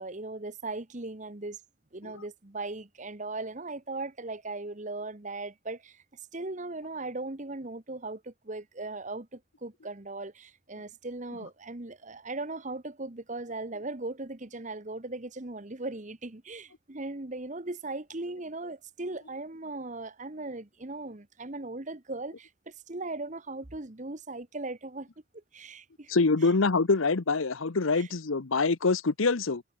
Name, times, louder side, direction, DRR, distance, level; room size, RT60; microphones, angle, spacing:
voice 1, 0.0-1.6 1.9-6.0 6.3-25.1 25.3-26.1 26.4-26.5 27.9-28.1, right 2 dB, 35° right, 1.2 m, -38 dB
voice 2, 26.1-29.6, left 3 dB, 75° left, 0.9 m, -25 dB
head